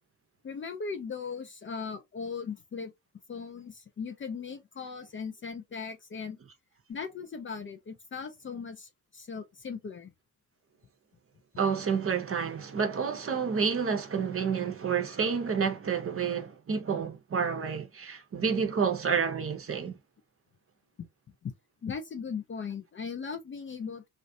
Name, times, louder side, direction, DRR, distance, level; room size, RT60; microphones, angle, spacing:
voice 1, 0.4-2.9 3.3-6.4 6.9-10.1 21.0-21.1 21.4-21.5 21.8-24.1, left 5 dB, 30° left, 0.5 m, -38 dB
voice 2, 11.6-20.0, right 6 dB, 35° right, 0.7 m, -29 dB
2.4 x 2.1 x 2.6 m
hypercardioid pair, 40°, 41 cm